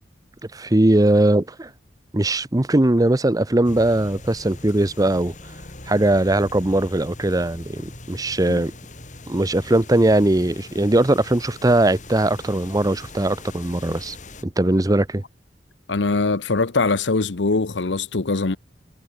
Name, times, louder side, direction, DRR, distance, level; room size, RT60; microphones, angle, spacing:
voice 1, 0.5-1.7 2.1-5.3 5.9-8.7 9.3-14.2 14.4-15.2, right 1 dB, 20° right, 0.8 m, -20 dB
sound 1, 3.6-14.4, left 2 dB, 45° left, 4.1 m, -41 dB
voice 2, 15.9-18.6, left 3 dB, 90° left, 1.0 m, -22 dB
head